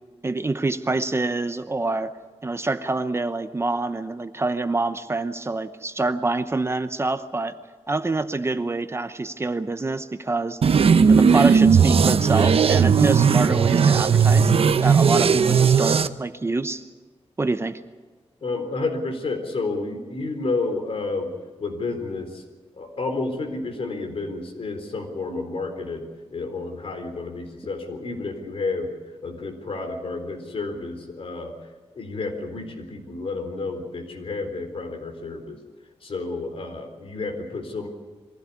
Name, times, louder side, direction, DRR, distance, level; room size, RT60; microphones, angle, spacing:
voice 1, 0.2-2.1 2.4-7.6 7.9-10.6 11.1-14.5 14.8-16.8 17.4-17.8, right 3 dB, 25° right, 10 dB, 0.8 m, -26 dB
sound 1, 10.6-16.1, right 6 dB, 65° right, 0.8 m, -17 dB
voice 2, 18.4-21.3 21.6-22.4 22.7-28.9 29.2-31.5 32.0-35.6 36.0-37.9, left 3 dB, 60° left, 4 dB, 3.9 m, -30 dB
23.0 x 16.0 x 9.5 m, 1.4 s
wide cardioid pair, 155°, 11 cm